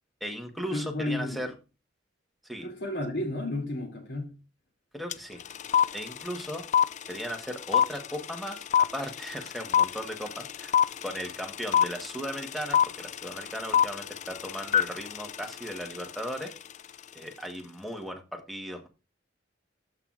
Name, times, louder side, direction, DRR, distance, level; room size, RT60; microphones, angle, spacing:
voice 1, 0.2-1.5 2.4-2.7 4.9-5.4 5.9-6.6 7.1-10.7 11.0-16.5 17.1-18.9, equal, ahead, 1.2 m, -37 dB
voice 2, 0.7-1.5 2.6-4.4, left 1 dB, 65° left, 2.6 m, -32 dB
sound 1, 5.1-5.2 5.4-16.6, left 9 dB, 40° left, 0.3 m, -25 dB
13.0 x 5.8 x 2.5 m
head